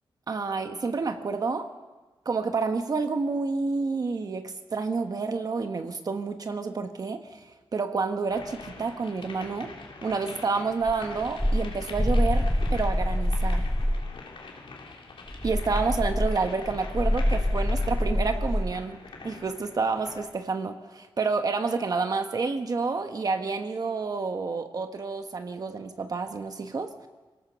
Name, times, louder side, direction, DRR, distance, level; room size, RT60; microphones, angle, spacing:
voice 1, 0.3-1.7 2.2-9.7 10.0-13.6 15.4-19.0 19.2-26.9, right 4 dB, 45° right, 7 dB, 1.1 m, -29 dB
sound 1, 8.3-20.4, left 4 dB, 75° left, 3.3 m, -44 dB
sound 2, 10.9-14.1 15.3-18.7, left 1 dB, 5° left, 1.3 m, -26 dB
25.0 x 17.5 x 6.9 m, 1.3 s
wide cardioid pair, 180°, 9 cm